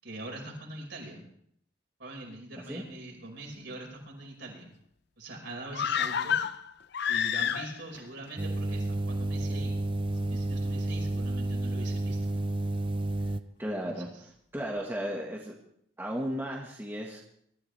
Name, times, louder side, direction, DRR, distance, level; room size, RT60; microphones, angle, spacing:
voice 1, 0.0-1.2 2.0-4.7 5.2-6.4 7.1-9.7 10.2-12.2 13.8-14.1, right 1 dB, 65° right, -1 dB, 5.3 m, -43 dB
sound 1, 5.7-8.0 8.3-8.4, left 8 dB, 55° left, 0.5 m, -29 dB
sound 2, 8.4-13.4, right 2 dB, 25° right, 0.5 m, -31 dB
sound 3, 10.0-13.8, right 1 dB, 80° left, 5.4 m, -59 dB
voice 2, 13.6-14.1 14.5-15.6 16.0-17.2, equal, 10° right, -2 dB, 1.6 m, -34 dB
22.5 x 13.5 x 3.4 m, 0.70 s
head